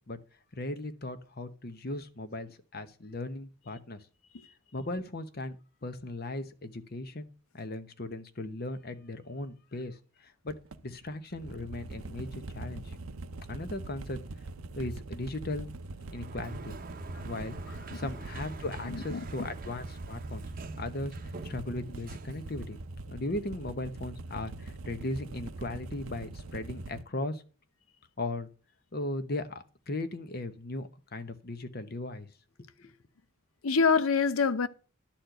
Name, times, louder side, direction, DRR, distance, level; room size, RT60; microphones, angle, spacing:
voice 1, 0.6-4.0 4.7-5.6 5.8-7.3 7.5-13.0 13.5-14.2 14.7-15.7 16.1-16.7 17.2-20.4 20.7-21.1 21.4-22.8 23.1-27.4 28.2-28.5 28.9-32.3 32.6-32.9, left 2 dB, 45° left, 0.9 m, -37 dB
sound 1, 10.5-27.0, right 2 dB, 90° right, 0.7 m, -43 dB
Sliding door, 16.0-23.2, right 2 dB, 40° right, 0.8 m, -46 dB
voice 2, 18.8-19.2 33.6-34.7, left 5 dB, 85° left, 0.7 m, -25 dB
11.5 x 4.4 x 7.8 m
head